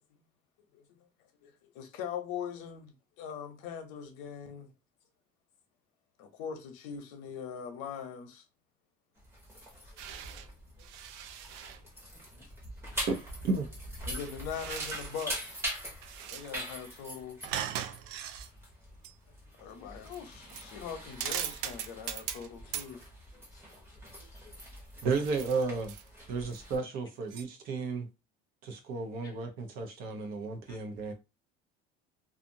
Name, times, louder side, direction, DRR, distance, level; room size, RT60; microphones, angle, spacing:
voice 1, 1.4-4.7 6.2-8.4 14.1-15.6 16.3-17.4 19.6-23.0, left 7 dB, 85° left, 0.8 m, -41 dB
sound 1, 9.2-26.8, equal, 10° right, 0.9 m, -43 dB
sound 2, 10.0-10.5 10.8-11.8 14.1-15.5 15.9-16.6 17.4-18.5 19.0-19.1 20.0-20.2 20.5-20.7 21.1-22.5 22.7-22.9 25.2-26.1 26.5-26.6 27.3-27.4, right 10 dB, 85° right, 0.4 m, -39 dB
voice 2, 23.3-24.6 26.3-26.5 29.2-29.3 30.7-30.8, left 4 dB, 20° left, 0.6 m, -60 dB
voice 3, 25.0-25.9 26.3-28.1 28.6-31.1, right 4 dB, 50° right, 0.7 m, -33 dB
2.6 x 2.5 x 2.6 m
cardioid pair, 180°, 20 cm